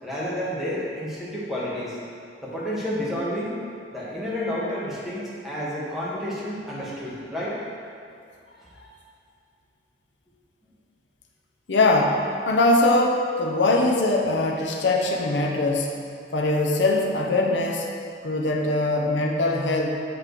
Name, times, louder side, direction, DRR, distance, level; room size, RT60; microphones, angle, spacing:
voice 1, 0.0-2.0 2.4-3.6 3.9-7.6, equal, ahead, -8 dB, 1.7 m, -30 dB
voice 2, 11.7-16.0 16.3-17.9 18.2-20.0, left 2 dB, 85° left, 1 dB, 0.8 m, -22 dB
7.8 x 3.7 x 6.6 m, 2.4 s
head